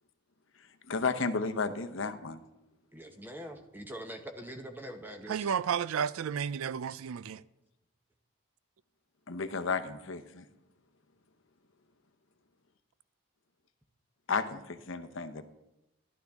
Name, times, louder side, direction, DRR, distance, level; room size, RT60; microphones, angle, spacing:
voice 1, 0.9-2.4 9.3-10.4 14.3-15.4, left 4 dB, 65° left, 9 dB, 0.7 m, -33 dB
voice 2, 2.9-5.5, equal, 10° right, 5 dB, 0.8 m, -44 dB
voice 3, 5.3-7.4, right 7 dB, 80° right, 18 dB, 0.4 m, -32 dB
12.0 x 11.5 x 3.5 m, 0.93 s
head